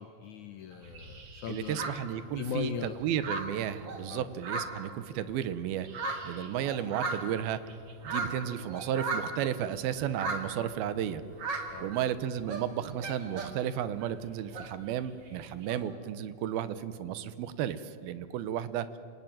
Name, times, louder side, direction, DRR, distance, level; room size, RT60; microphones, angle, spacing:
voice 1, 0.0-2.0 2.4-3.0 4.1-4.3 11.7-12.0, left 7 dB, 75° left, 8 dB, 1.7 m, -38 dB
sound 1, 0.7-2.7 3.0-5.3 5.7-9.5 10.0-10.7 11.3-12.1 12.3-13.7 14.0-15.8, right 3 dB, 40° right, 2.6 m, -38 dB
voice 2, 1.5-5.9 6.2-7.6 8.0-11.2 11.8-19.0, right 10 dB, 75° right, 14 dB, 2.7 m, -33 dB
28.0 x 19.0 x 9.1 m, 2.6 s
omnidirectional pair, 4.7 m